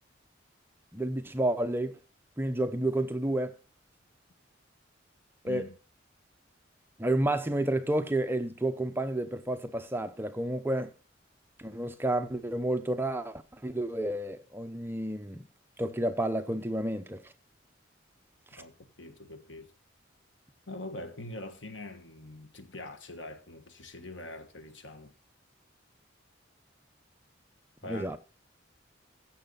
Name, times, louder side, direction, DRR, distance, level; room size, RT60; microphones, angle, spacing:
voice 1, 0.9-2.0 2.4-3.5 5.4-5.7 7.0-10.9 11.6-15.4 15.8-17.2 18.5-18.6 27.9-28.2, right 1 dB, 10° right, 0.7 m, -30 dB
voice 2, 5.4-5.7 18.6-19.7 20.7-25.1 27.8-28.1, left 2 dB, 70° left, 1.5 m, -43 dB
16.0 x 6.8 x 4.0 m
head